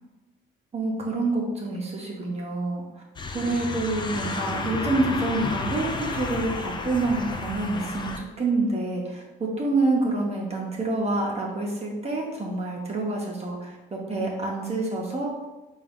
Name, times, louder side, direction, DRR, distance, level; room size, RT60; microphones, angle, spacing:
voice 1, 0.7-2.8 3.3-15.4, right 2 dB, 30° right, -2 dB, 0.7 m, -27 dB
sound 1, 3.2-8.2, left 3 dB, 25° left, 0.4 m, -32 dB
sound 2, 4.5-8.5 11.9-12.3 13.4-13.5, left 1 dB, 70° left, 1.0 m, -47 dB
3.7 x 2.3 x 3.5 m, 1.1 s
cardioid pair, 90°, 20 cm